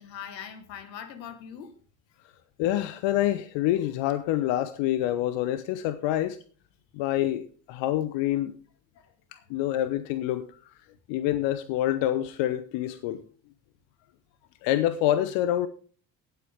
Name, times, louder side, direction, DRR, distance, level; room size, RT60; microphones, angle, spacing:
voice 1, 0.0-1.7 8.9-9.4, left 8 dB, 80° left, 1.5 m, -42 dB
voice 2, 2.6-6.4 6.9-8.6 9.5-10.5 11.1-13.2 14.6-15.7, left 13 dB, 60° left, 0.9 m, -26 dB
17.5 x 7.9 x 3.5 m
hypercardioid pair, 55°, 50 cm